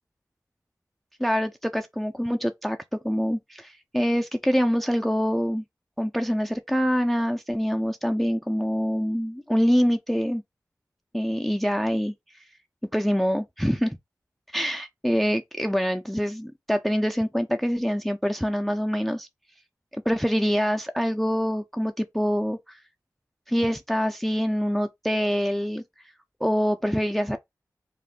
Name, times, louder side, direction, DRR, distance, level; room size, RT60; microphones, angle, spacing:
voice 1, 1.2-2.8 3.0-5.6 6.0-10.4 11.1-12.1 12.9-14.0 14.5-19.3 19.9-22.8 23.5-25.8 26.4-27.4, equal, 5° left, 0.3 m, -25 dB
2.4 x 2.0 x 3.5 m
cardioid pair, 45°, 7 cm